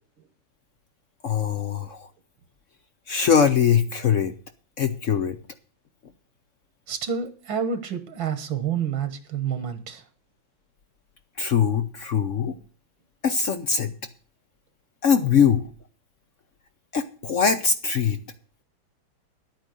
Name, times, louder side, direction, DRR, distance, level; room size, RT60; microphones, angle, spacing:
voice 1, 1.2-2.1 3.1-4.3 4.8-5.4 11.4-12.5 13.2-13.9 15.0-15.6 16.9-18.2, left 7 dB, 60° left, 10 dB, 0.8 m, -22 dB
voice 2, 6.9-10.1, right 7 dB, 80° right, 10 dB, 2.0 m, -29 dB
11.5 x 9.2 x 6.3 m, 0.40 s
omnidirectional pair, 2.2 m